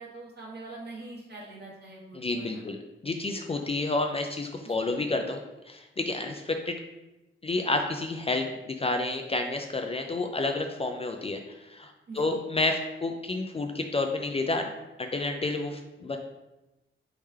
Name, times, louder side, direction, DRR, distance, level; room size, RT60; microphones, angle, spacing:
voice 1, 0.0-2.6 4.6-5.0 12.1-12.4, right 2 dB, 50° right, -4 dB, 1.4 m, -44 dB
voice 2, 2.1-2.8 3.0-6.8 7.4-14.7 15.0-16.2, left 2 dB, 30° left, 4 dB, 0.3 m, -30 dB
4.2 x 3.6 x 3.3 m, 0.99 s
wide cardioid pair, 110°, 21 cm